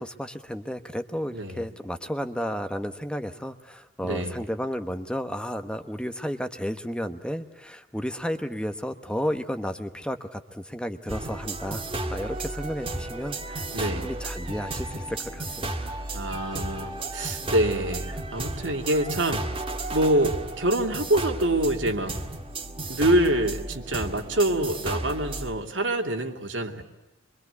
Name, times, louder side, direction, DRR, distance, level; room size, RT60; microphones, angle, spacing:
voice 1, 0.0-16.0, equal, 5° left, 8 dB, 1.1 m, -33 dB
voice 2, 1.3-1.6 4.0-4.4 13.7-14.1 16.1-19.4 19.9-22.2 22.9-26.8, right 1 dB, 85° right, 3 dB, 2.9 m, -25 dB
sound 1, 11.1-25.5, right 2 dB, 30° right, 2.0 m, -33 dB
24.5 x 24.0 x 8.2 m, 1.0 s
head